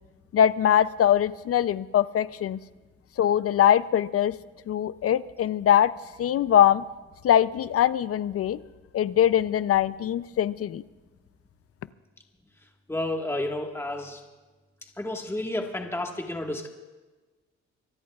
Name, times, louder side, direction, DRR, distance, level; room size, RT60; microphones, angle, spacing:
voice 1, 0.3-2.6 3.2-4.4 4.7-5.9 6.2-6.8 7.2-8.6 8.9-10.8, left 10 dB, 50° left, 16 dB, 0.5 m, -22 dB
voice 2, 12.9-14.2 15.0-16.7, left 1 dB, 10° left, 2 dB, 1.6 m, -31 dB
25.0 x 19.0 x 2.4 m, 1.2 s
cardioid pair, 90°, 30 cm